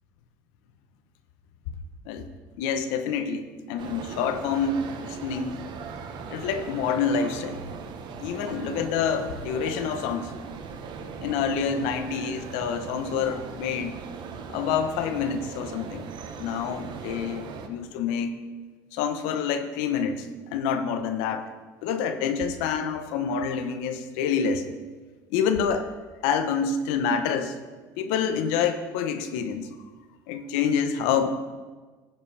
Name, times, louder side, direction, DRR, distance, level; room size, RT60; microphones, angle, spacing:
voice 1, 2.6-5.6 6.3-7.6 8.2-10.3 11.2-14.0 14.5-16.1 16.4-18.4 18.9-21.5 21.8-24.6 25.3-25.9 26.2-27.5 28.0-29.8 30.3-31.3, left 6 dB, 80° left, 9 dB, 0.8 m, -27 dB
sound 1, 3.8-17.7, right 5 dB, 55° right, 1.0 m, -39 dB
13.0 x 7.3 x 3.3 m, 1.4 s
supercardioid pair, 85°, 9 cm